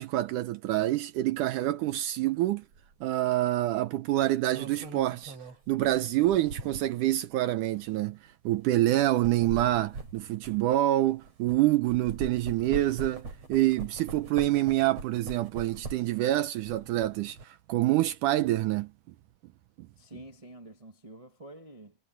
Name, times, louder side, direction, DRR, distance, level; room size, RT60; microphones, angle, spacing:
voice 1, 0.0-2.6 3.0-5.4 5.7-8.2 8.5-18.9, right 15 dB, 80° right, 2.1 m, -26 dB
sound 1, 2.7-2.9 4.2-7.1 7.7-7.9 9.0-11.6 11.9-16.2 16.6-17.4, right 4 dB, 45° right, 5.4 m, -42 dB
voice 2, 20.0-22.0, right 1 dB, 15° right, 1.2 m, -48 dB
omnidirectional pair, 4.0 m